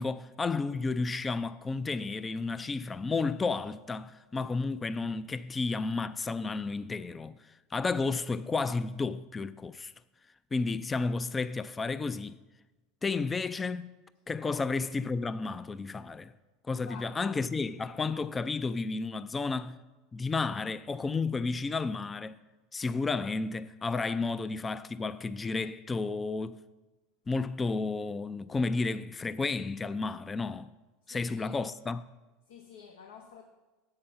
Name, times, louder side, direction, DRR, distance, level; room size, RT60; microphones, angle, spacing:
voice 1, 0.0-9.9 10.5-12.4 13.0-13.9 14.3-16.3 16.7-19.8 20.1-22.4 22.7-26.6 27.3-30.7 31.1-32.1, left 4 dB, 20° left, 0.3 m, -32 dB
voice 2, 16.7-17.1 31.1-31.5 32.5-33.4, left 7 dB, 80° left, 0.8 m, -50 dB
7.8 x 5.7 x 6.9 m
hypercardioid pair, 85°, 0 cm